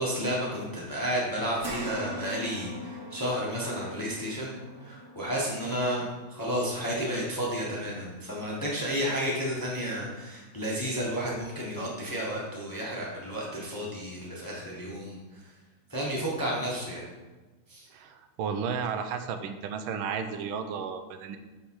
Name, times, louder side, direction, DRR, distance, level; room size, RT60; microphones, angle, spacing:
voice 1, 0.0-15.4 15.9-17.0 17.7-17.9, equal, 10° left, -4 dB, 1.2 m, -32 dB
sound 1, 1.6-10.2 10.7-10.8 12.2-12.3, equal, 40° right, 1.2 m, -44 dB
voice 2, 17.9-21.4, right 6 dB, 80° right, 8 dB, 1.5 m, -33 dB
6.6 x 6.4 x 4.7 m, 1.2 s
omnidirectional pair, 2.3 m